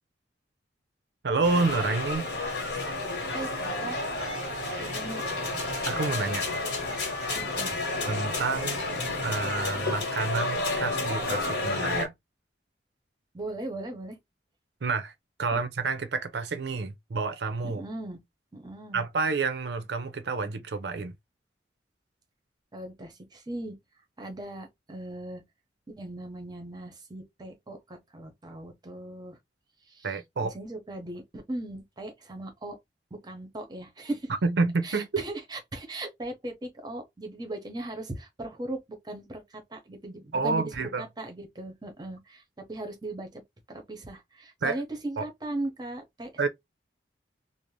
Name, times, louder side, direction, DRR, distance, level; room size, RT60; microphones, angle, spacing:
voice 1, 1.2-2.3 4.6-5.0 5.9-6.4 8.1-8.8 9.2-12.1 14.8-15.1 15.4-17.8 18.9-21.1 30.0-30.5 34.4-35.2 40.3-41.0 44.6-44.8 45.2-45.3 46.4-46.5, right 4 dB, 65° right, 0.5 m, -29 dB
sound 1, 1.4-12.1, left 2 dB, 65° left, 1.1 m, -31 dB
voice 2, 3.3-4.0 4.8-5.2 7.4-7.8 13.3-14.2 15.5-15.6 17.7-18.2 18.5-19.0 22.7-23.8 24.2-25.4 25.9-29.4 29.9-30.1 30.4-32.8 33.2-34.3 34.8-38.8 39.0-40.7 41.0-42.4 42.7-43.4 43.7-46.5, right 1 dB, 25° right, 0.7 m, -38 dB
2.5 x 2.0 x 3.0 m
head